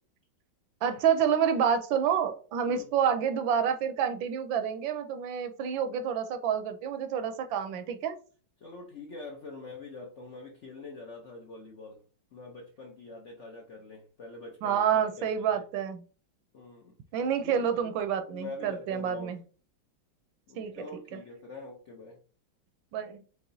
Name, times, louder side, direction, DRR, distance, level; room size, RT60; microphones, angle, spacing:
voice 1, 0.8-8.2 14.6-16.0 17.1-19.4 20.6-20.7 22.9-23.2, right 8 dB, 80° right, 1.3 m, -28 dB
voice 2, 8.6-12.0 12.3-15.6 16.5-17.0 17.4-17.9 18.3-19.4 20.5-22.2, left 3 dB, 70° left, 0.7 m, -45 dB
4.7 x 3.5 x 2.7 m
omnidirectional pair, 2.2 m